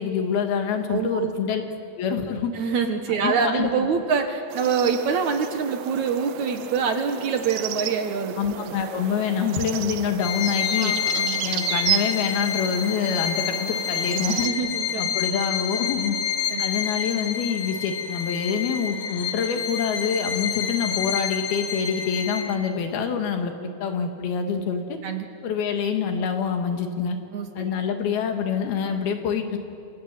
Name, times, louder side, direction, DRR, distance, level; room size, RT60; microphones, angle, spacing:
voice 1, 0.0-1.6 2.0-2.5 3.1-3.9 8.4-10.9 11.4-14.5 15.0-16.2 16.6-25.0 25.4-27.2 27.6-29.6, left 6 dB, 75° left, 5 dB, 3.7 m, -26 dB
voice 2, 0.9-1.3 2.5-8.7 10.8-11.5 14.4-15.2 16.5-16.6 25.0-25.3 27.3-27.7, right 5 dB, 60° right, 5 dB, 2.4 m, -25 dB
sound 1, 4.5-14.5, right 14 dB, 90° right, 2.7 m, -33 dB
Bowed string instrument, 10.2-22.7, left 8 dB, 55° left, 1.7 m, -28 dB
27.5 x 26.5 x 7.5 m, 2.7 s
omnidirectional pair, 4.4 m